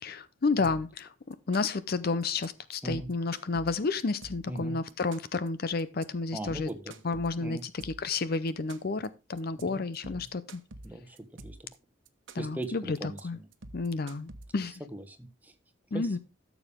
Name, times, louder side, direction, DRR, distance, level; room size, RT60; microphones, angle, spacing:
voice 1, 0.0-6.7 7.0-10.6 12.3-13.4 13.7-14.8 15.9-16.2, left 3 dB, 50° left, 0.6 m, -31 dB
sound 1, 0.6-1.0 1.3-1.9 2.2-2.5 2.8-4.6 4.9-5.5 5.8-6.0 6.4-8.2 8.5-9.1 9.4-9.6 9.9-11.7 12.1-12.6 13.0-13.2 13.5-14.8, right 2 dB, 70° right, 1.1 m, -48 dB
voice 2, 4.5-4.8 6.3-7.6 9.6-9.8 10.1-10.3 10.8-11.6 12.4-13.5 14.9-15.5 15.9-16.2, right 1 dB, 10° right, 1.3 m, -40 dB
13.0 x 7.0 x 3.5 m
head